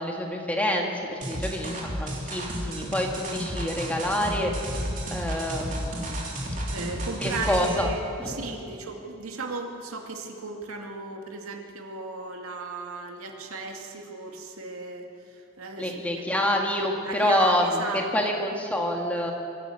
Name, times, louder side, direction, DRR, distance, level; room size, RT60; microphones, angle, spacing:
voice 1, 0.0-4.5 5.1-6.2 7.2-7.9 8.2-8.6 15.8-19.3, left 1 dB, 5° left, 1 dB, 2.0 m, -27 dB
sound 1, 1.2-7.9, right 1 dB, 35° right, 3.3 m, -32 dB
voice 2, 6.7-15.1 15.6-15.9 16.3-16.4 17.0-18.3, right 3 dB, 85° right, 2 dB, 2.3 m, -35 dB
24.0 x 14.0 x 7.9 m, 2.6 s
head